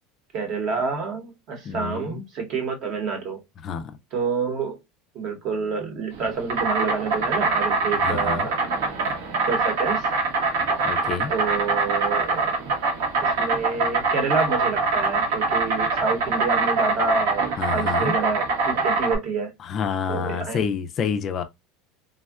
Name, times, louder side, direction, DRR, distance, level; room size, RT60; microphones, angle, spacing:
voice 1, 0.3-3.4 4.1-4.8 5.1-8.6 9.5-10.1 11.3-12.7 13.2-19.5 20.1-20.6, right 5 dB, 40° right, 0.9 m, -28 dB
voice 2, 1.7-2.2 3.6-3.9 8.0-8.5 10.8-11.3 17.6-18.1 19.6-21.4, left 7 dB, 30° left, 0.3 m, -28 dB
Insect, 6.1-19.2, right 3 dB, 80° right, 1.0 m, -24 dB
3.4 x 2.2 x 2.3 m
supercardioid pair, 160°, 0 cm